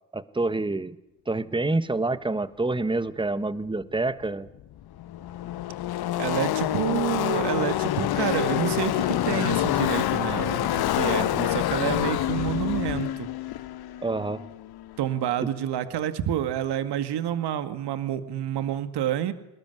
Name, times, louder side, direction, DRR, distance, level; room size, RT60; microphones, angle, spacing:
voice 1, 0.1-1.0 1.3-4.5 14.0-14.4, right 2 dB, 10° right, 14 dB, 1.5 m, -27 dB
Car passing by / Race car auto racing, 4.2-4.3 4.5-15.1, left 13 dB, 50° left, 1.3 m, -27 dB
voice 2, 6.2-13.3 15.0-19.3, right 11 dB, 55° right, 10 dB, 2.1 m, -28 dB
25.0 x 19.5 x 9.6 m, 0.96 s
hypercardioid pair, 55°, 48 cm